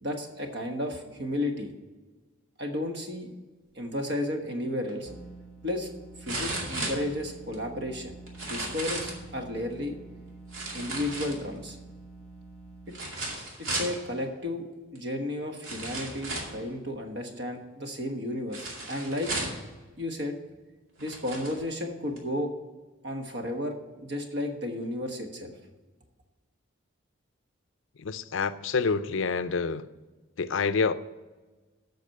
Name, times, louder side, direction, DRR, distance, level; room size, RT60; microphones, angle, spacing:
voice 1, 0.0-1.7 2.6-3.3 3.7-5.1 5.6-5.9 6.2-8.1 8.5-9.9 10.7-11.8 13.6-19.3 20.0-20.3 21.0-22.5 23.0-25.5, left 1 dB, 55° right, 1.3 m, -33 dB
sound 1, 4.9-5.0 6.3-7.6 8.3-9.2 10.5-11.7 12.9-14.0 15.0-15.1 15.6-16.6 18.5-19.7 20.5-20.6 21.0-21.6 22.2-22.3, right 2 dB, 75° right, 2.3 m, -34 dB
sound 2, 5.0-13.1, right 2 dB, 5° left, 1.3 m, -47 dB
voice 2, 28.0-29.9 30.4-30.9, left 5 dB, 65° left, 0.5 m, -27 dB
8.3 x 6.0 x 7.6 m
head